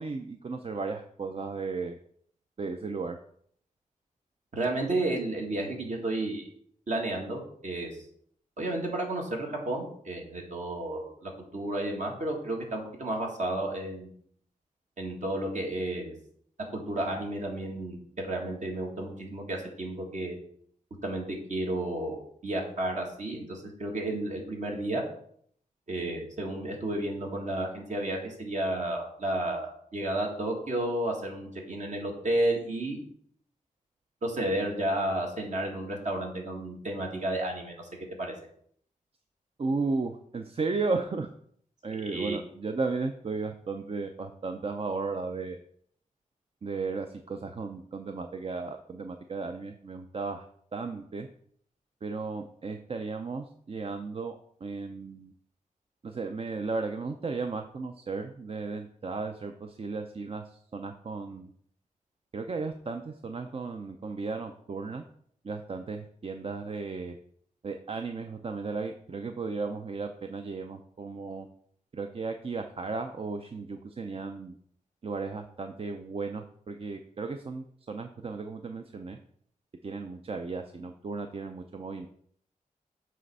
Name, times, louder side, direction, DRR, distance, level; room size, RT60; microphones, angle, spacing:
voice 1, 0.0-2.0 2.6-3.2 39.6-41.3 41.8-45.6 46.6-50.4 50.7-51.3 52.0-55.3 56.0-61.5 62.3-65.0 65.4-67.2 67.6-71.5 71.9-74.6 75.0-79.2 79.8-82.1, right 4 dB, 45° right, 6 dB, 0.5 m, -35 dB
voice 2, 4.5-6.4 6.9-7.9 8.6-14.1 15.0-16.1 16.7-18.0 18.2-20.4 21.0-25.0 25.9-33.0 34.2-37.9 38.2-38.3 42.0-42.4, right 1 dB, 60° right, 0 dB, 1.8 m, -32 dB
7.6 x 3.3 x 5.4 m, 0.64 s
wide cardioid pair, 80°, 14 cm